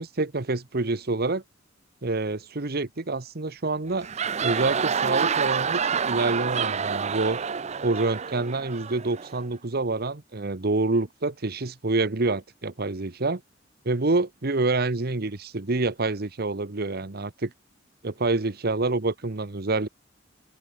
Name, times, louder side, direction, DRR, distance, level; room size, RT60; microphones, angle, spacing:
voice 1, 0.0-1.4 2.0-4.1 4.4-7.4 7.8-13.4 13.8-17.5 18.0-19.9, right 3 dB, 55° right, 1.2 m, -27 dB
sound 1, 3.9-9.5, right 6 dB, 35° right, 0.6 m, -28 dB
head